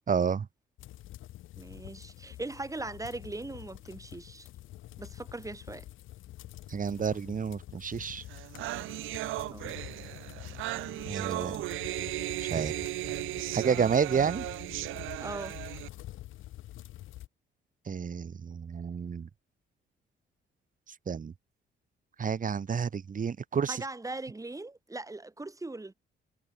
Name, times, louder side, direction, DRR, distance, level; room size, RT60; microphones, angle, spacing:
voice 1, 0.1-0.5 6.7-8.2 11.1-11.6 12.4-12.7 13.5-14.5 17.9-19.3 21.1-21.3 22.2-23.8, right 6 dB, 45° right, 2.7 m, -30 dB
sound 1, 0.8-17.3, left 14 dB, 85° left, 3.5 m, -47 dB
voice 2, 1.6-4.5 5.0-5.8 9.5-9.7 15.2-15.6 23.7-25.9, right 2 dB, 15° right, 4.1 m, -40 dB
sound 2, 8.0-8.1 8.3-15.9, right 17 dB, 90° right, 0.9 m, -36 dB
cardioid pair, 90°, 20 cm